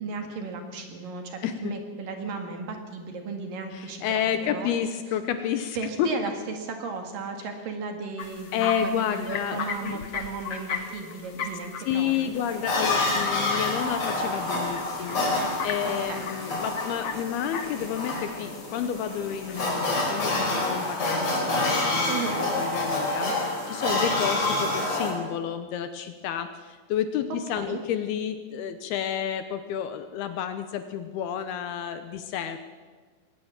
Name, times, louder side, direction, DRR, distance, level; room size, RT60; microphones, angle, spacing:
voice 1, 0.0-4.8 5.8-12.4 15.8-16.3 22.1-22.5 27.6-27.8, right 4 dB, 60° right, 4 dB, 3.3 m, -35 dB
voice 2, 1.4-1.7 3.7-6.1 8.5-10.0 11.8-32.6, left 9 dB, 75° left, 9 dB, 2.5 m, -30 dB
sound 1, 8.2-19.7, left 5 dB, 55° left, 1.7 m, -38 dB
sound 2, 12.3-25.1, left 2 dB, 40° left, 5.4 m, -28 dB
21.0 x 18.5 x 7.4 m, 1.5 s
omnidirectional pair, 5.1 m